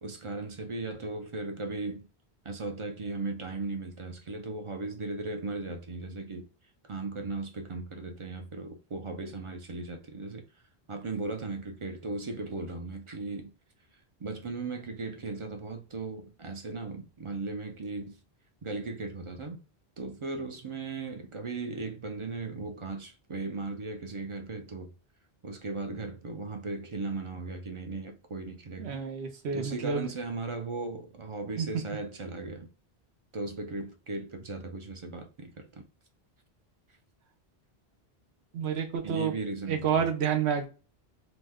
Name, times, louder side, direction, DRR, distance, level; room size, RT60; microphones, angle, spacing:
voice 1, 0.0-2.1 2.4-6.5 6.8-10.4 10.9-13.5 14.2-18.2 18.6-19.6 20.0-24.9 25.4-29.0 29.5-32.7 33.3-35.8 39.0-40.1, right 3 dB, 45° right, 0.4 m, -37 dB
voice 2, 28.8-30.1 31.6-31.7 38.5-39.3 39.7-40.6, right 7 dB, 85° right, 0.9 m, -29 dB
2.8 x 2.1 x 3.5 m
omnidirectional pair, 1.1 m